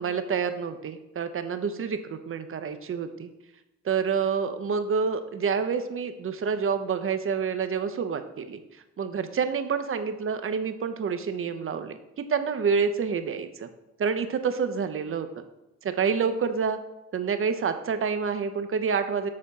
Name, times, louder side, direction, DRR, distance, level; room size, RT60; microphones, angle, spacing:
voice 1, 0.0-3.3 3.8-8.6 9.0-13.7 14.0-15.4 15.8-16.8 17.1-19.3, right 6 dB, 45° right, 9 dB, 0.9 m, -28 dB
13.0 x 4.3 x 4.2 m, 0.93 s
cardioid pair, 90°, 30 cm